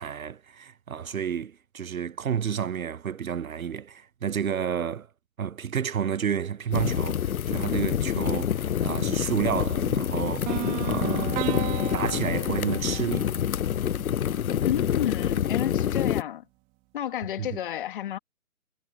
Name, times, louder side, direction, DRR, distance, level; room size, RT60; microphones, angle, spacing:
voice 1, 0.0-5.1 5.4-11.4 11.9-13.3 17.4-17.5, right 8 dB, 60° right, 0.9 m, -30 dB
sound 1, 6.7-16.2, left 9 dB, 65° left, 0.6 m, -27 dB
sound 2, 10.5-14.4, right 24 dB, 15° right, 1.9 m, -35 dB
voice 2, 14.6-16.4 16.9-18.2, left 11 dB, 35° left, 2.1 m, -31 dB
figure-of-eight pair, 140°, 46 cm